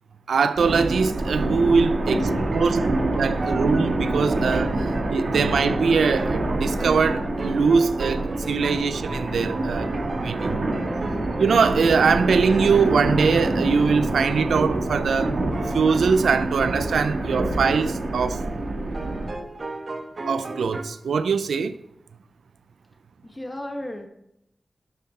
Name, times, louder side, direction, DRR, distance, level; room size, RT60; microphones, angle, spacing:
voice 1, 0.3-8.2 8.5-9.9 10.2-10.6 11.4-15.3 15.7-18.4 20.3-21.8, right 5 dB, 90° right, 0.4 m, -22 dB
sound 1, 0.6-19.3, right 2 dB, 70° right, 1.8 m, -26 dB
voice 2, 1.9-2.2 23.2-24.1, left 1 dB, 20° left, 1.4 m, -35 dB
sound 2, 2.3-12.5 14.3-14.5 15.5-20.8, right 2 dB, 55° right, 1.2 m, -36 dB
12.0 x 5.7 x 4.3 m
cardioid pair, 45°, 0 cm